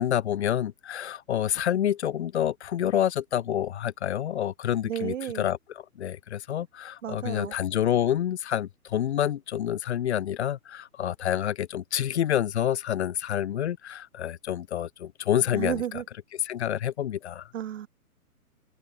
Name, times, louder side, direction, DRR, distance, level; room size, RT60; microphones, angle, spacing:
voice 1, 0.0-5.6 6.0-15.8 16.4-17.5, left 10 dB, 50° left, 0.6 m, -28 dB
voice 2, 4.8-5.5 7.0-7.5 15.5-16.1 17.5-17.9, right 10 dB, 55° right, 0.8 m, -32 dB
hypercardioid pair, 140°, 45 cm